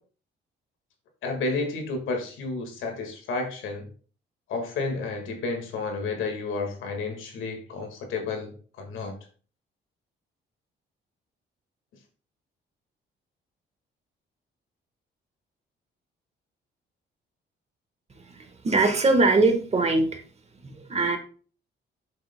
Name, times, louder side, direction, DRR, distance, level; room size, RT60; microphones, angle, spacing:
voice 1, 1.2-3.8 4.5-8.5 8.8-9.1, left 3 dB, 85° left, 4 dB, 1.8 m, -31 dB
voice 2, 18.3-20.2 20.6-21.2, right 3 dB, 35° right, 5 dB, 1.4 m, -22 dB
7.6 x 6.5 x 2.2 m, 0.40 s
cardioid pair, 90°, 20 cm